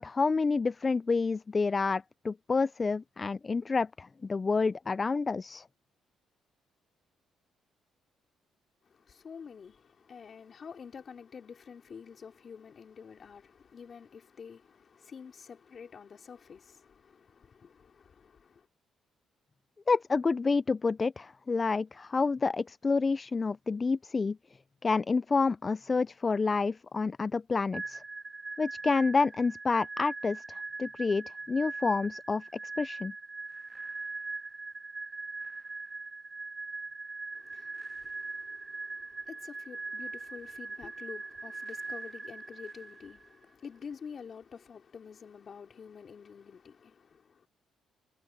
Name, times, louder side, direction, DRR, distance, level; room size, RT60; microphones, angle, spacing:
voice 1, 0.0-5.6 19.9-24.4 24.8-28.0 28.6-32.4 32.8-33.1, left 4 dB, 30° left, 0.3 m, -29 dB
voice 2, 8.8-18.7 37.3-47.5, left 6 dB, 45° left, 3.6 m, -48 dB
sound 1, 27.7-43.3, right 3 dB, 20° right, 1.6 m, -41 dB
cardioid pair, 90°, 0 cm